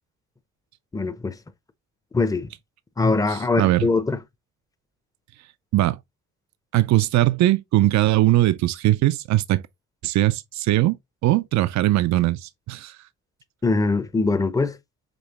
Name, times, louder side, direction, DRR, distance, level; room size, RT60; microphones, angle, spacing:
voice 1, 0.9-1.4 2.1-2.5 3.0-4.2 13.6-14.8, left 3 dB, 10° left, 0.6 m, -22 dB
voice 2, 3.3-3.9 5.7-6.0 6.7-9.6 10.0-11.0 11.2-12.9, right 15 dB, 65° right, 0.5 m, -20 dB
5.2 x 3.1 x 2.9 m
cardioid pair, 90°, 30 cm